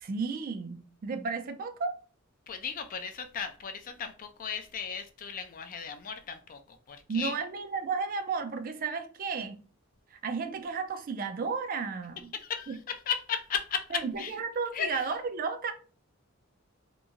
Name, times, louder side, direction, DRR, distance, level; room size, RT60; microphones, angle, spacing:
voice 1, 0.0-1.9 7.1-9.6 10.1-12.3 12.7-12.8 13.9-15.7, right 5 dB, 40° right, 0.4 m, -33 dB
voice 2, 2.5-7.3 12.3-14.3 14.7-15.1, left 7 dB, 40° left, 0.3 m, -36 dB
2.9 x 2.6 x 2.4 m
head